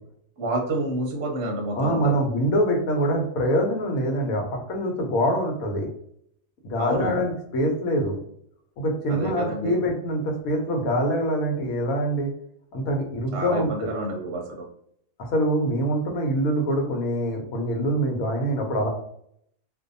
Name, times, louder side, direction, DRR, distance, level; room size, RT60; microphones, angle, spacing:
voice 1, 0.4-2.2 6.8-7.2 9.1-9.8 13.3-14.6, right 1 dB, 60° right, 0 dB, 0.7 m, -29 dB
voice 2, 1.7-5.9 6.6-8.2 8.8-12.3 12.7-13.9 15.3-18.9, equal, 90° left, 2 dB, 1.2 m, -24 dB
2.6 x 2.2 x 2.5 m, 0.70 s
omnidirectional pair, 1.4 m